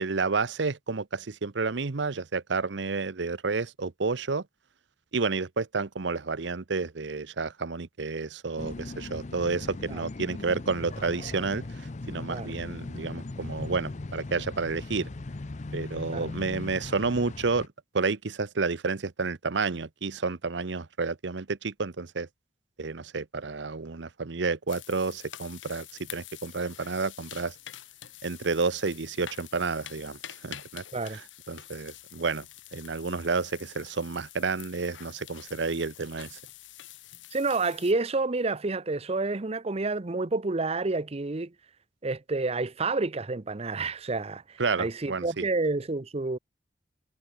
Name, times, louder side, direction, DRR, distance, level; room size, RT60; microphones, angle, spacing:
voice 1, 0.0-4.4 5.1-11.6 12.1-15.1 15.7-17.7 17.9-22.3 22.8-25.9 26.1-27.5 28.2-30.8 31.1-32.5 32.7-36.4 44.6-45.5, right 4 dB, 70° right, 0.8 m, -30 dB
sound 1, 8.6-17.7, left 2 dB, 40° left, 0.6 m, -39 dB
sound 2, 24.7-37.9, left 12 dB, 90° left, 1.5 m, -47 dB
voice 2, 37.3-41.5 42.0-46.4, right 3 dB, 35° right, 0.7 m, -29 dB
head